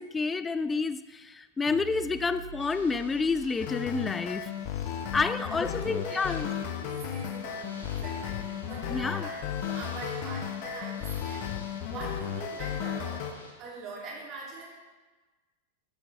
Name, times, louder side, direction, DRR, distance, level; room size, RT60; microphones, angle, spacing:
voice 1, 0.0-4.5 5.1-6.5 8.9-9.3, left 4 dB, 15° left, 13 dB, 0.3 m, -29 dB
sound 1, 1.7-3.5, right 9 dB, 60° right, 0.5 m, -45 dB
Ocean / Boat Water vehicle, 2.6-13.5, left 1 dB, 75° left, 1.9 m, -49 dB
sound 2, 3.6-13.3, left 9 dB, 45° left, 0.8 m, -34 dB
voice 2, 5.0-13.3 13.6-14.7, right 3 dB, 35° right, -4 dB, 3.0 m, -43 dB
13.0 x 7.8 x 3.5 m, 1.3 s
figure-of-eight pair, 90°, 0 cm